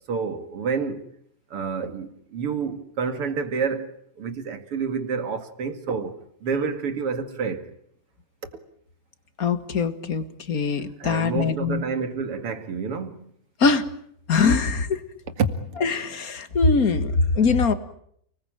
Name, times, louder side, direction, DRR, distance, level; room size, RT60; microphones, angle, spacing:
voice 1, 0.1-1.0 1.5-3.9 4.2-6.1 6.4-7.6 11.0-13.3 15.4-15.9, right 5 dB, 85° right, 3.1 m, -28 dB
voice 2, 9.4-11.8 13.6-13.8 14.3-15.0 15.8-17.7, left 4 dB, 40° left, 2.1 m, -22 dB
30.0 x 20.5 x 9.0 m
omnidirectional pair, 2.4 m